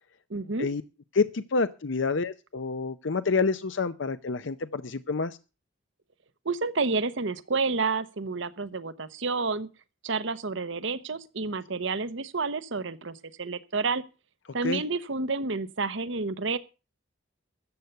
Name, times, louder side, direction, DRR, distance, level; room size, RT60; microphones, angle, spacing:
voice 1, 0.3-0.7 6.4-9.7 10.0-14.0 14.5-16.6, right 4 dB, 70° right, 0.9 m, -30 dB
voice 2, 1.1-5.4 14.6-14.8, left 4 dB, 65° left, 0.6 m, -28 dB
13.5 x 8.1 x 6.8 m
head